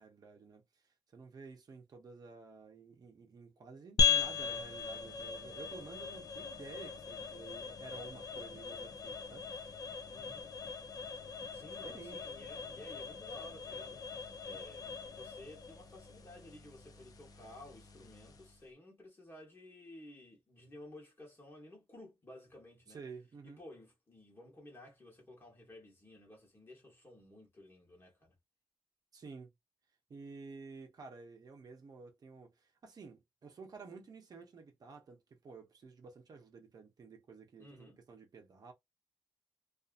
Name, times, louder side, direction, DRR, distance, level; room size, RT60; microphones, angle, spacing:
voice 1, 0.0-9.7 11.7-12.4 12.7-12.8 22.9-23.6 29.1-29.5 30.1-38.7, right 4 dB, 45° right, 0.7 m, -52 dB
sound 1, 4.0-18.6, left 6 dB, 45° left, 0.5 m, -38 dB
voice 2, 10.1-10.5 11.5-23.0 23.4-28.3 37.6-38.0, left 1 dB, 25° left, 1.1 m, -54 dB
2.7 x 2.4 x 2.4 m
wide cardioid pair, 175°, 9 cm